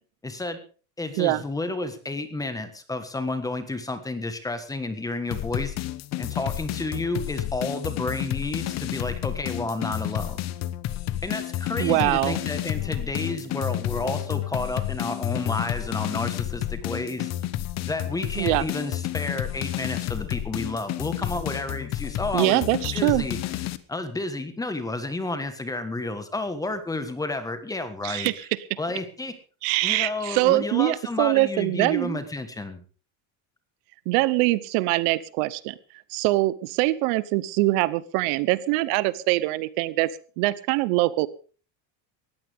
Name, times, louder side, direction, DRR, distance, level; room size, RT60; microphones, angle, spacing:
voice 1, 0.2-0.6 1.0-5.7 6.2-10.4 11.2-17.3 17.8-22.6 22.9-23.4 23.9-28.3 28.8-29.3 29.8-32.8, left 2 dB, 5° left, 10 dB, 1.5 m, -31 dB
sound 1, 5.3-23.8, left 14 dB, 35° left, 0.9 m, -30 dB
voice 2, 11.8-12.4 18.4-18.6 22.3-23.2 28.0-28.4 29.6-32.2 34.1-35.7 36.1-40.1 40.4-41.3, right 18 dB, 70° right, 18 dB, 1.0 m, -23 dB
19.0 x 14.5 x 3.6 m, 0.39 s
cardioid pair, 180°, 47 cm